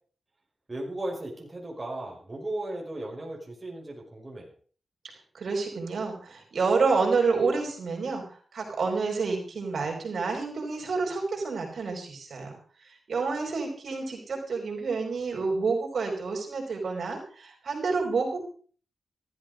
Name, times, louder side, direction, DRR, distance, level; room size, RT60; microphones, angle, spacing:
voice 1, 0.7-4.5, right 1 dB, 20° right, -2 dB, 5.5 m, -36 dB
voice 2, 5.3-12.6 12.8-18.4, right 4 dB, 60° right, 1 dB, 5.1 m, -29 dB
15.0 x 13.5 x 5.2 m, 0.43 s
wide cardioid pair, 130°, 0 cm